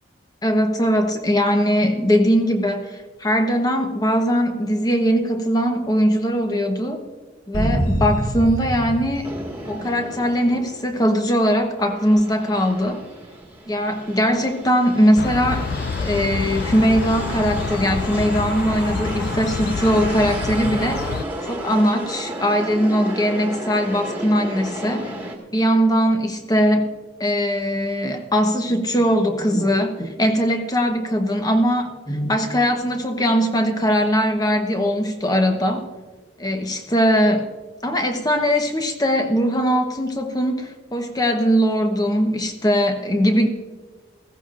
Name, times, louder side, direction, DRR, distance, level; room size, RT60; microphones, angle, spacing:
voice 1, 0.4-7.0 7.5-9.3 9.7-13.0 13.7-15.7 16.0-21.1 21.5-25.1 25.5-26.9 27.2-35.9 36.4-37.5 37.8-43.5, equal, 20° left, 5 dB, 1.1 m, -20 dB
sound 1, 7.5-10.3, equal, 80° left, 3.5 m, -25 dB
sound 2, 9.2-11.1 11.5-25.4, right 1 dB, 10° right, 1.8 m, -33 dB
sound 3, 15.2-21.2, left 4 dB, 50° left, 0.4 m, -27 dB
20.0 x 16.0 x 2.5 m, 1.4 s
head